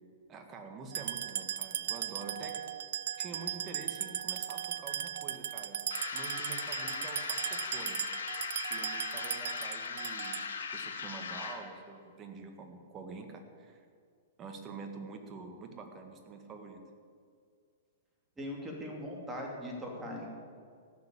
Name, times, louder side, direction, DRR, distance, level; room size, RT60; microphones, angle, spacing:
voice 1, 0.3-2.6 3.2-8.1 8.7-10.4 10.7-13.8 14.4-16.8, right 4 dB, 25° right, 5 dB, 1.7 m, -46 dB
sound 1, 0.9-10.6, right 10 dB, 70° right, 0.5 m, -37 dB
sound 2, 5.9-11.7, left 5 dB, 85° left, 1.8 m, -39 dB
voice 2, 18.4-20.3, left 1 dB, 10° right, -2 dB, 2.9 m, -40 dB
15.0 x 6.8 x 8.6 m, 2.2 s
hypercardioid pair, 140°, 0 cm